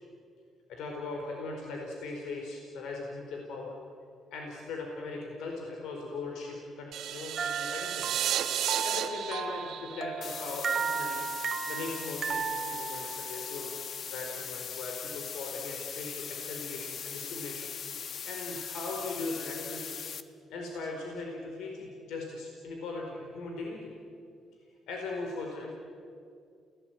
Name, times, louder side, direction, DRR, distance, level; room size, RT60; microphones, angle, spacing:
voice 1, 0.7-3.7 4.3-8.2 8.5-13.7 14.1-17.7 18.2-20.0 20.5-23.9 24.9-25.7, left 3 dB, 85° left, 1 dB, 4.7 m, -39 dB
sound 1, 6.9-11.0, right 11 dB, 85° right, 1.7 m, -33 dB
sound 2, 7.4-13.6, right 6 dB, 50° right, 1.2 m, -35 dB
sound 3, 10.2-20.2, left 7 dB, 60° left, 1.3 m, -40 dB
29.5 x 18.5 x 9.5 m, 2.3 s
cardioid pair, 90°, 0 cm